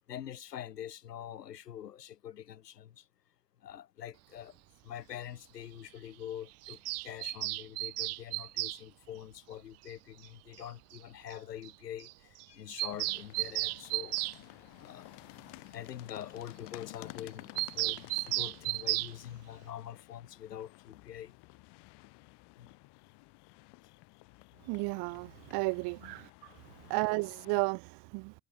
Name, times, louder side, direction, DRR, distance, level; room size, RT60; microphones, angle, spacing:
voice 1, 0.1-3.0 3.6-4.6 4.8-14.2 14.8-15.2 15.7-21.3 22.6-22.7 26.0-26.1 26.8-26.9, left 10 dB, 85° left, 1.3 m, -45 dB
Bird vocalization bird call bird song, 6.6-8.8 10.2-10.3 10.6-10.7 10.9-11.0 11.3-11.4 11.6-11.7 12.0-12.1 12.4-14.4 17.6-19.1, right 22 dB, 35° right, 0.4 m, -34 dB
sound 1, 12.9-27.6, left 24 dB, 60° left, 5.4 m, -53 dB
voice 2, 24.7-26.3 26.9-28.3, right 29 dB, 55° right, 1.2 m, -33 dB
figure-of-eight pair, 70°, 47 cm